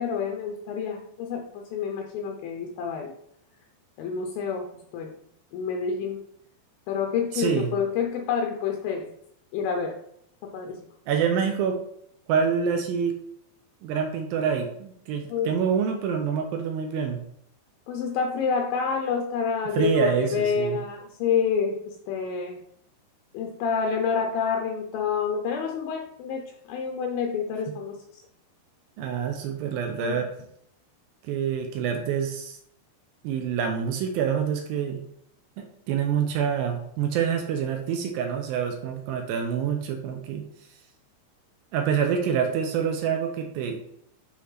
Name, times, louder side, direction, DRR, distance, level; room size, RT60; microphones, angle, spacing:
voice 1, 0.0-3.1 4.0-4.7 4.9-5.2 5.5-6.2 6.9-9.1 9.5-10.0 10.4-10.8 15.3-15.5 17.9-22.6 23.3-28.0 30.0-30.2, left 6 dB, 80° left, 2 dB, 2.1 m, -28 dB
voice 2, 7.3-7.7 11.1-11.8 12.3-13.2 13.8-17.2 19.7-20.8 29.0-30.3 31.2-32.6 33.2-35.0 35.6-40.5 41.7-43.8, right 7 dB, 85° right, 4 dB, 2.1 m, -26 dB
10.0 x 3.5 x 3.2 m, 0.69 s
omnidirectional pair, 4.9 m